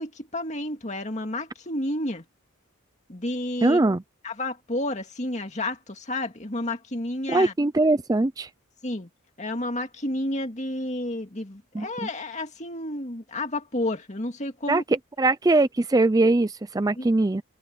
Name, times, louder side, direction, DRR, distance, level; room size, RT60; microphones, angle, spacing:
voice 1, 0.0-2.2 3.1-3.8 4.2-7.5 8.8-9.1 9.4-14.8 17.0-17.1, left 1 dB, 35° left, 2.3 m, -31 dB
voice 2, 3.6-4.0 7.3-8.5 11.7-12.1 14.7-14.8 15.2-17.4, right 2 dB, 15° right, 0.4 m, -21 dB
head